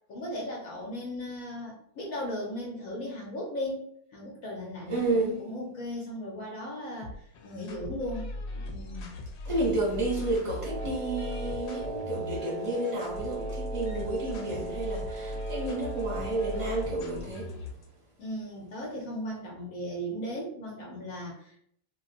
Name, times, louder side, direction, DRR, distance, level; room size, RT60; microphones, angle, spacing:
voice 1, 0.1-3.9 4.1-8.3 8.5-9.1 18.2-21.6, equal, 65° left, 0.9 m, -37 dB
voice 2, 4.9-5.4 9.4-17.7, right 2 dB, 35° right, 0.5 m, -31 dB
sound 1, 7.0-17.9, left 2 dB, 85° left, 1.3 m, -39 dB
Wind instrument woodwind instrument, 10.6-17.1, right 4 dB, 70° right, 1.0 m, -38 dB
3.0 x 2.5 x 2.4 m
omnidirectional pair, 1.9 m